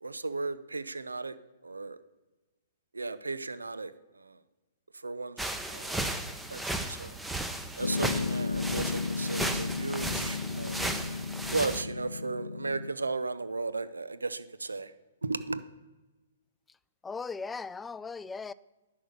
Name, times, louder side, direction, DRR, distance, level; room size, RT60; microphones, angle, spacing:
voice 1, 0.0-1.3 1.6-2.0 2.9-3.9 4.2-4.3 5.0-6.0 6.5-7.2 7.8-10.8 11.5-14.9 15.2-15.6, right 3 dB, 90° right, 14 dB, 0.6 m, -35 dB
sound 1, 5.4-11.8, right 1 dB, 5° right, 0.8 m, -35 dB
Piano, 7.8-12.9, left 4 dB, 80° left, 0.5 m, -34 dB
voice 2, 17.0-18.5, left 4 dB, 10° left, 17 dB, 0.3 m, -38 dB
11.0 x 5.6 x 8.1 m, 1.2 s
hypercardioid pair, 125°, 0 cm